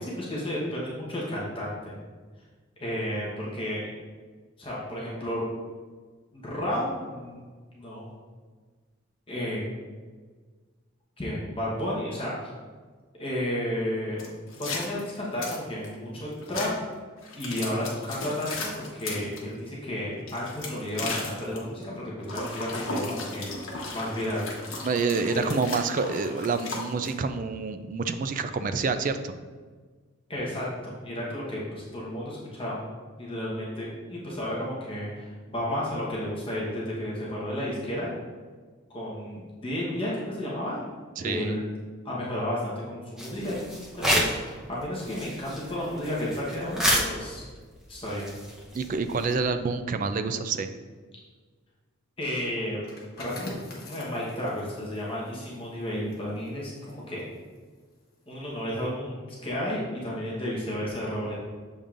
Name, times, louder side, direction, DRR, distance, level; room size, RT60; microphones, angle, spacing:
voice 1, 0.0-1.9 2.8-3.8 4.6-5.4 6.3-7.4 7.7-8.1 9.3-9.6 11.2-12.5 13.2-14.2 14.6-16.7 17.3-23.4 23.9-24.5 25.3-25.5 30.3-32.8 33.2-38.2 38.9-40.8 41.2-41.7 42.0-43.6 43.9-47.4 47.9-48.3 52.2-52.8 53.2-53.6 53.8-57.3 58.3-61.3, left 1 dB, 25° left, -6 dB, 1.1 m, -32 dB
sound 1, 14.2-15.9 16.4-16.7 17.2-19.4 20.2-21.6 22.2-27.1, left 3 dB, 80° left, 1.1 m, -36 dB
voice 2, 24.8-29.3 41.2-41.6 48.7-50.7, right 4 dB, 40° right, 9 dB, 0.3 m, -28 dB
sound 2, 43.2-44.5 44.8-49.4, equal, 5° right, 0.8 m, -30 dB
sound 3, 52.7-58.2 58.6-58.9, left 2 dB, 45° left, 1.2 m, -46 dB
7.0 x 5.2 x 2.5 m, 1.5 s
head